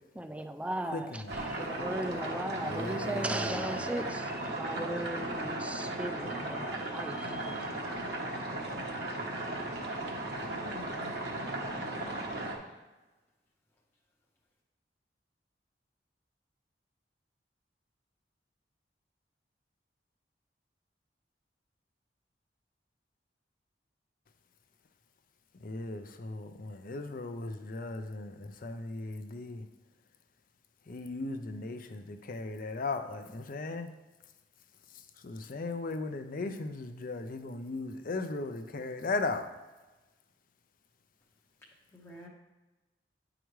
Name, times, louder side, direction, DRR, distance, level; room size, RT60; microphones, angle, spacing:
voice 1, 0.2-7.7, right 1 dB, 10° right, 8 dB, 0.3 m, -37 dB
voice 2, 0.9-1.5 2.6-3.7 25.6-29.7 30.9-33.9 34.9-39.5, left 3 dB, 50° left, 8 dB, 0.5 m, -37 dB
sound 1, 1.3-12.6, right 2 dB, 65° right, 1.0 m, -36 dB
voice 3, 10.5-11.3 41.9-42.3, left 1 dB, 15° left, -4 dB, 0.7 m, -48 dB
9.1 x 4.8 x 3.2 m, 1.1 s
head